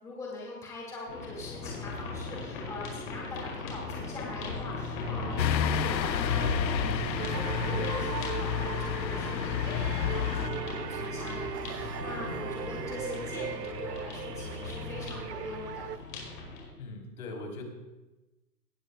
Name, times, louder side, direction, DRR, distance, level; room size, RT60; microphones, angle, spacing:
voice 1, 0.0-7.0 7.3-15.9, left 2 dB, 5° left, -4 dB, 1.9 m, -42 dB
sound 1, 1.1-16.7, left 3 dB, 35° left, 4.9 m, -37 dB
sound 2, 5.4-10.5, left 10 dB, 85° left, 0.7 m, -31 dB
sound 3, 7.1-16.0, right 9 dB, 75° right, 0.8 m, -38 dB
voice 2, 16.8-17.6, left 2 dB, 55° left, 1 dB, 3.6 m, -40 dB
18.5 x 14.5 x 2.2 m, 1.1 s
hypercardioid pair, 150°, 50 cm